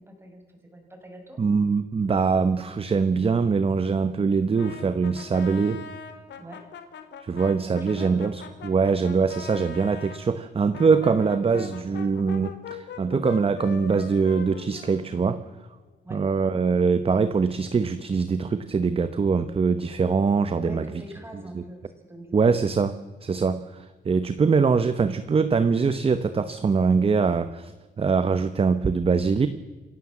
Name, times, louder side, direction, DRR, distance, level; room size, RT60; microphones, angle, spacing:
voice 1, 0.0-1.4 6.4-6.7 7.6-8.2 16.0-16.2 20.6-22.5, right 1 dB, 15° right, 4 dB, 5.7 m, -44 dB
voice 2, 1.4-5.8 7.2-15.4 16.1-21.0 21.5-21.6 22.3-22.9 23.2-29.5, right 5 dB, 30° right, 12 dB, 1.1 m, -23 dB
Brass instrument, 4.6-10.2 10.7-15.5, left 6 dB, 85° left, 2.8 m, -41 dB
27.5 x 16.0 x 7.4 m, 1.3 s
cardioid pair, 130°, 18 cm